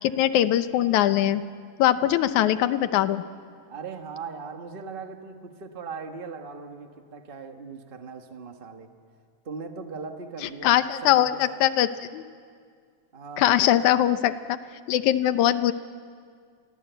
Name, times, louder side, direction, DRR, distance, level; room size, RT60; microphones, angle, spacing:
voice 1, 0.0-1.4 1.8-3.2 10.6-12.2 13.4-14.6 14.9-15.7, left 12 dB, 80° left, 12 dB, 2.3 m, -21 dB
voice 2, 3.7-8.9 9.4-11.6 13.1-13.7, right 5 dB, 55° right, 5 dB, 0.6 m, -39 dB
29.5 x 23.0 x 8.1 m, 2.1 s
omnidirectional pair, 3.5 m